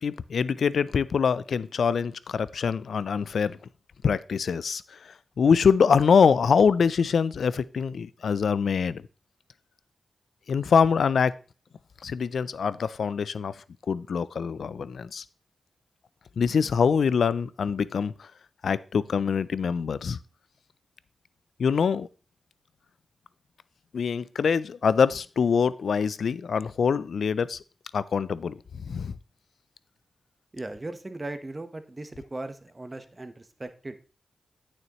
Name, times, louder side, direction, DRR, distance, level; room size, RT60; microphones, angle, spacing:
voice 1, 0.0-3.6 4.0-9.0 10.5-11.3 12.0-13.5 13.9-15.2 16.4-18.3 18.6-20.2 21.6-22.1 23.9-27.6 27.9-29.1, left 6 dB, 80° left, 0.3 m, -24 dB
voice 2, 30.5-33.9, right 2 dB, 30° right, 1.0 m, -38 dB
8.9 x 6.4 x 3.0 m
cardioid pair, 45°, 0 cm